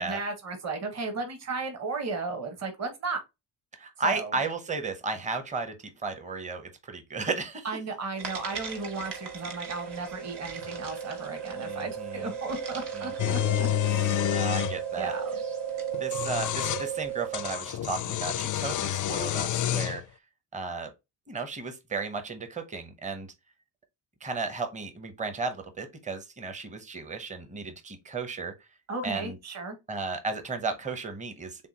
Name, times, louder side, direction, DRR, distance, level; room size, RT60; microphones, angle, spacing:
voice 1, 0.0-3.2 4.0-4.3 7.6-14.4 15.0-15.3 28.9-29.8, right 3 dB, 35° right, 1.4 m, -35 dB
voice 2, 3.7-7.7 11.6-12.4 12.9-13.5 14.3-15.1 16.0-20.0 20.5-20.9 21.3-23.3 24.2-28.5 29.0-29.4 29.9-31.7, right 4 dB, 15° right, 0.8 m, -34 dB
sound 1, 8.2-17.7, right 7 dB, 60° right, 1.6 m, -35 dB
sound 2, 13.2-14.8 15.9-16.9 17.3-20.0, left 13 dB, 45° left, 0.4 m, -28 dB
6.9 x 2.4 x 2.8 m
cardioid pair, 115°, 46 cm